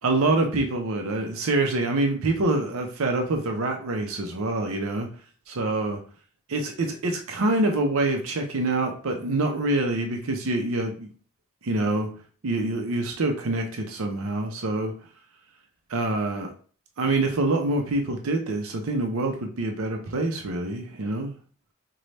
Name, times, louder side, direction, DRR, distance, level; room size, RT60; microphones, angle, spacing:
voice 1, 0.0-5.1 5.5-6.0 6.5-11.1 11.6-12.1 12.4-14.9 15.9-16.5 17.0-21.3, right 2 dB, 80° right, 3 dB, 0.6 m, -26 dB
3.2 x 2.2 x 4.0 m, 0.42 s
head